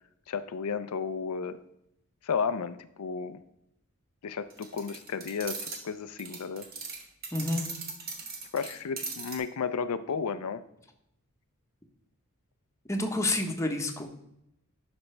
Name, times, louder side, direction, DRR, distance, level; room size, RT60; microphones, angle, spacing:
voice 1, 0.3-1.6 2.2-3.4 4.2-6.7 8.5-10.6, left 6 dB, 90° left, 12 dB, 0.5 m, -33 dB
sound 1, 4.5-5.8 6.2-9.4, right 4 dB, 45° right, 1.3 m, -39 dB
voice 2, 7.3-7.7 12.9-14.1, left 2 dB, 15° left, 3 dB, 0.9 m, -29 dB
11.5 x 5.1 x 3.2 m, 0.80 s
head